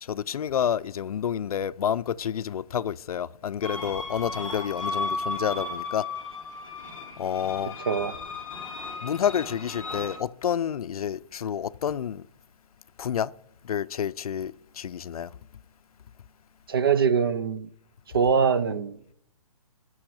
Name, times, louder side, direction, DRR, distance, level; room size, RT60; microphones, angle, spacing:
voice 1, 0.0-6.1 7.2-7.8 9.0-12.3 13.0-13.3 13.6-15.3, left 9 dB, 90° left, 0.4 m, -29 dB
sound 1, 3.6-10.2, left 3 dB, 5° left, 1.1 m, -35 dB
voice 2, 16.7-17.7 18.1-19.0, right 6 dB, 40° right, 0.5 m, -23 dB
8.9 x 6.2 x 7.1 m
hypercardioid pair, 180°, 18 cm